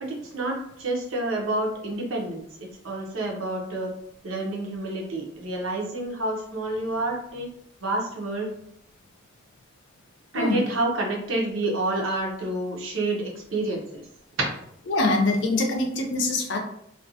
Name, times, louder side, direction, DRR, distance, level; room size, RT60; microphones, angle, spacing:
voice 1, 0.0-3.9 4.2-7.5 7.8-8.5 10.3-14.0 14.4-14.6, right 2 dB, 70° right, -1 dB, 0.7 m, -28 dB
voice 2, 14.9-16.6, left 2 dB, 55° left, 2 dB, 0.5 m, -23 dB
2.5 x 2.2 x 2.7 m, 0.72 s
head